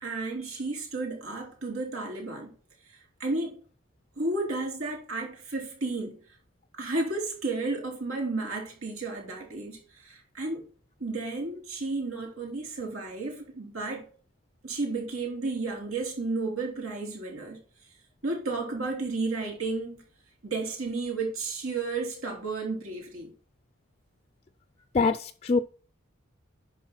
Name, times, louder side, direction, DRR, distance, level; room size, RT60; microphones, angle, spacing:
voice 1, 0.0-2.5 3.2-3.6 4.2-6.2 6.8-10.7 11.0-14.1 14.6-17.6 18.2-20.0 20.4-23.3, right 3 dB, 85° right, 3.6 m, -32 dB
voice 2, 24.9-25.6, left 4 dB, 30° left, 0.3 m, -24 dB
11.0 x 4.3 x 5.6 m
head